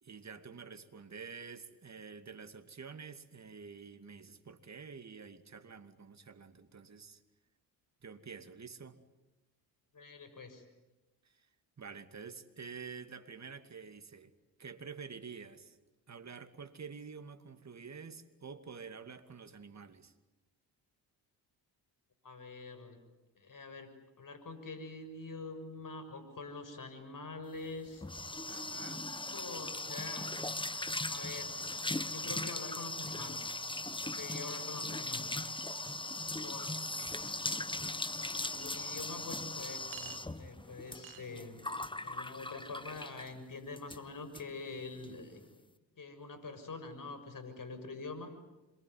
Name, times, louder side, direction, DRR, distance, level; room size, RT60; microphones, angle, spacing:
voice 1, 0.0-7.2 8.0-9.0 11.2-11.4 11.8-14.3 14.6-15.8 16.1-20.1 28.5-29.1 36.8-37.2, right 5 dB, 35° right, 2.5 m, -48 dB
voice 2, 9.9-10.6 22.2-23.0 23.4-23.9 24.2-28.1 29.3-30.3 31.0-31.6 32.1-33.5 34.0-35.3 36.4-37.1 38.4-41.7 42.0-45.4 46.0-48.3, left 3 dB, 45° left, 6.7 m, -45 dB
sound 1, 27.6-43.4 43.8-44.0 44.3-44.4 44.7-45.1, left 2 dB, 10° left, 1.4 m, -39 dB
Chink clink, 38.5-38.7 39.9-40.2 41.0-41.2, right 15 dB, 75° right, 1.4 m, -48 dB
27.0 x 23.0 x 9.6 m
hypercardioid pair, 55°, 47 cm